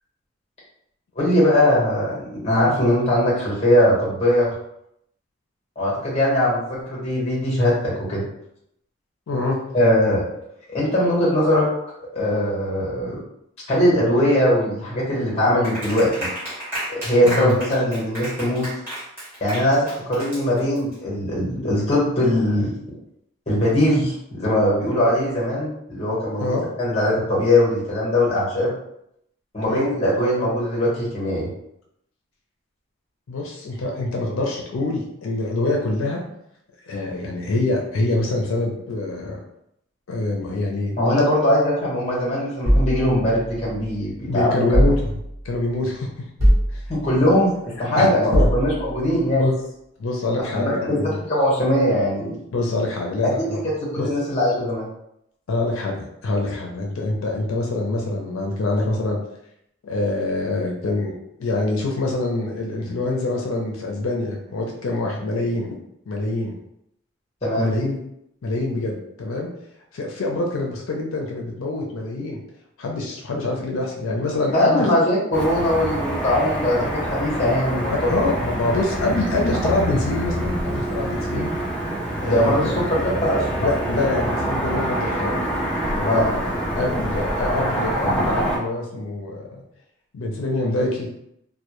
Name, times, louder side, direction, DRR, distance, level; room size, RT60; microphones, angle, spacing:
voice 1, 1.2-4.5 5.8-8.2 9.7-10.2 10.7-11.7 12.1-13.2 13.7-16.3 16.9-18.7 19.4-22.7 23.5-28.7 29.5-31.5 41.0-44.8 46.9-49.5 50.5-52.3 53.2-53.3 53.6-54.9 67.4-67.7 74.5-78.2 82.2-83.7 86.1-86.3, left 1 dB, 30° left, -5 dB, 0.9 m, -20 dB
voice 2, 9.3-9.6 17.2-17.5 26.4-26.6 29.6-29.9 33.3-36.2 36.8-39.4 40.1-40.9 44.3-45.1 45.4-46.3 46.7-46.8 47.9-48.1 48.3-48.5 49.4-49.5 50.0-51.2 52.5-53.6 54.0-54.1 55.5-59.2 59.8-65.7 66.1-66.5 67.6-68.0 68.4-69.5 69.9-72.4 72.8-74.9 77.9-81.5 82.2-82.9 83.6-85.4 85.9-86.5 86.8-89.6 90.1-91.1, left 2 dB, 90° left, 0 dB, 0.4 m, -25 dB
Clapping, 15.6-20.9, right 1 dB, 10° right, 1.0 m, -32 dB
sound 1, 42.6-44.0 44.7-45.6 46.4-47.3 48.3-49.1, equal, 75° right, 1.0 m, -21 dB
Car passing by / Traffic noise roadway noise, 75.3-88.6, right 1 dB, 5° left, 0.4 m, -26 dB
2.1 x 2.1 x 2.9 m, 0.77 s
head